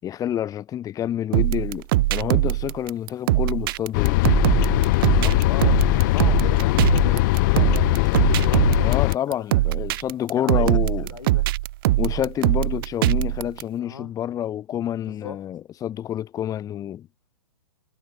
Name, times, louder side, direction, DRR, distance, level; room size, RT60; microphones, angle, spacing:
voice 1, 0.0-1.8 2.1-4.2 8.8-11.1 12.0-17.1, left 11 dB, 20° left, 5.6 m, -28 dB
sound 1, 1.3-13.6, right 17 dB, 45° right, 0.8 m, -22 dB
sound 2, 3.9-9.2, left 23 dB, 35° left, 0.7 m, -20 dB
voice 2, 5.0-9.6 10.4-11.5 13.8-14.1 15.1-15.5, left 6 dB, 80° left, 6.1 m, -37 dB
hypercardioid pair, 135°, 17 cm